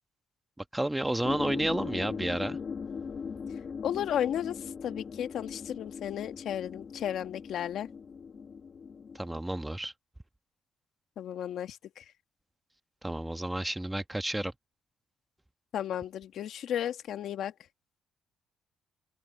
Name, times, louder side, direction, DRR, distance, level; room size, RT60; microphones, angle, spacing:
voice 1, 0.7-2.6 9.1-9.9 13.0-14.5, right 1 dB, 10° right, 1.4 m, -31 dB
sound 1, 1.2-9.4, left 6 dB, 45° left, 1.6 m, -39 dB
voice 2, 3.8-7.9 11.2-12.0 15.7-17.5, left 10 dB, 70° left, 1.6 m, -34 dB
open air
cardioid pair, 115°, 0 cm